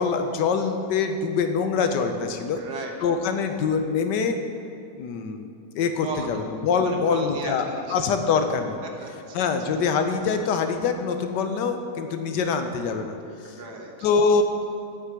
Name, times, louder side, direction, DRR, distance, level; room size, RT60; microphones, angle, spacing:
voice 1, 0.0-2.6 3.0-4.4 4.9-5.5 5.7-8.8 9.3-13.1 14.0-14.4, left 5 dB, 85° left, 7 dB, 1.4 m, -24 dB
voice 2, 2.6-2.9 6.0-6.3 6.9-7.8 9.0-9.4 13.4-13.9, right 4 dB, 75° right, 1 dB, 1.7 m, -36 dB
8.4 x 6.0 x 8.0 m, 2.6 s
omnidirectional pair, 1.8 m